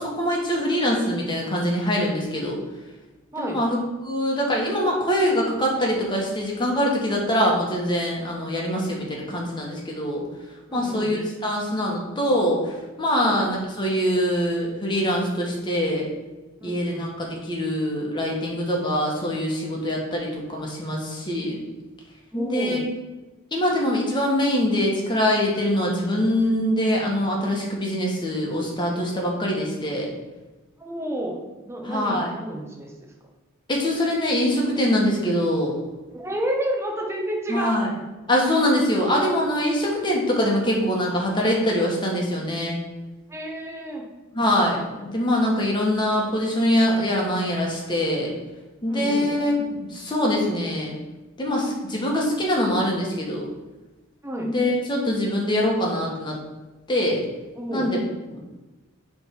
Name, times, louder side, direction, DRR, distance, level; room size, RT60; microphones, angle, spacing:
voice 1, 0.0-2.6 3.4-10.3 10.7-16.1 16.6-21.6 22.3-22.8 23.5-30.1 31.8-32.3 33.7-35.7 37.5-37.9 38.3-42.8 44.3-48.3 48.8-50.9 51.4-53.4 54.4-56.3 56.9-57.2 57.7-58.0 58.3-58.4, equal, 20° left, -2 dB, 1.6 m, -23 dB
voice 2, 10.7-11.2 13.1-13.4 16.6-17.1 22.3-22.9 30.8-32.9 36.1-37.8 43.3-44.0 48.9-49.3 54.2-54.5 57.5-57.9, right 1 dB, 15° right, -1 dB, 1.1 m, -30 dB
7.7 x 3.6 x 6.1 m, 1.1 s
head